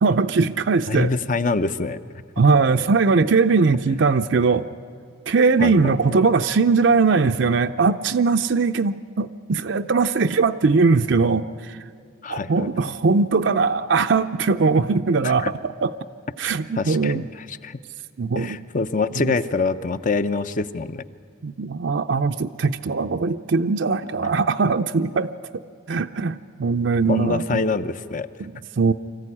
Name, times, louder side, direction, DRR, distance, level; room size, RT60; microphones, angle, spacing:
voice 1, 0.0-1.1 2.4-4.6 5.3-11.8 12.3-15.5 15.8-16.0 16.4-17.3 18.2-18.6 19.2-19.3 21.4-25.3 25.9-27.6 28.4-28.9, right 4 dB, 60° right, 7 dB, 0.5 m, -20 dB
voice 2, 0.9-2.0 5.6-5.9 12.2-12.9 15.2-15.5 16.8-17.8 18.4-21.0 27.1-28.3, left 4 dB, 40° left, 12 dB, 0.6 m, -25 dB
24.5 x 14.5 x 9.8 m, 2.2 s
head